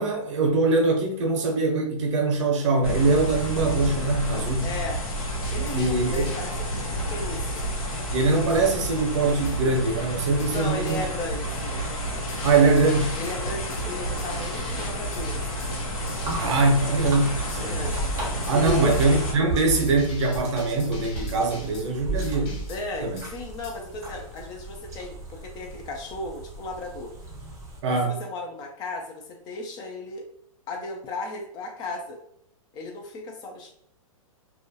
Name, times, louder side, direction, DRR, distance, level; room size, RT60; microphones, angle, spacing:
voice 1, 0.0-4.7 5.7-6.3 8.1-11.0 12.4-13.2 16.4-17.7 18.5-22.6 23.0-23.2 27.8-28.2, right 3 dB, 55° right, 3 dB, 0.7 m, -23 dB
sound 1, 2.8-19.3, equal, 80° left, 0.9 m, -30 dB
voice 2, 4.6-5.0 5.5-7.6 10.5-11.8 13.2-15.6 17.6-18.0 18.5-19.1 22.7-27.1 28.0-30.3 30.7-32.2 32.7-33.7, left 2 dB, 25° left, 2 dB, 0.4 m, -35 dB
sound 2, 5.4-6.4 7.6-7.7 8.5-8.7 9.4-9.6 10.4-11.0 12.3-13.4 13.7-13.8 14.2-16.3 17.5-17.6 18.4-18.6 18.9-19.0 19.8-21.9 22.2-22.8 23.2-23.3 23.6-23.8, left 3 dB, 40° left, 0.9 m, -45 dB
sound 3, 16.1-27.8, right 2 dB, 15° right, 0.6 m, -35 dB
2.3 x 2.0 x 2.6 m, 0.67 s
hypercardioid pair, 125°, 18 cm